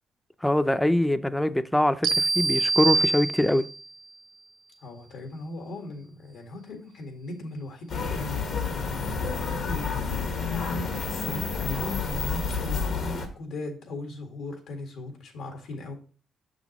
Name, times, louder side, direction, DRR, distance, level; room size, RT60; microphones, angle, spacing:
voice 1, 0.4-3.7, left 1 dB, 5° left, 0.5 m, -23 dB
sound 1, 2.0-3.9, right 3 dB, 60° right, 0.9 m, -25 dB
voice 2, 4.8-15.9, left 2 dB, 80° left, 1.9 m, -38 dB
sound 2, 7.9-13.3, left 5 dB, 65° left, 1.3 m, -29 dB
6.5 x 6.2 x 3.0 m
cardioid pair, 90°, 0 cm